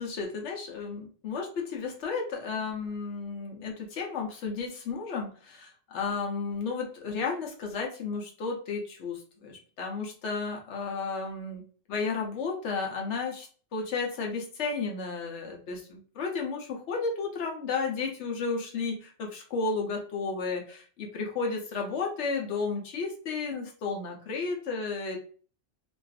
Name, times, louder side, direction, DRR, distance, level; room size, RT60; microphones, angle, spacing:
voice 1, 0.0-11.6 11.9-25.2, left 4 dB, 85° left, 1 dB, 1.0 m, -33 dB
2.5 x 2.3 x 2.3 m, 0.42 s
omnidirectional pair, 1.2 m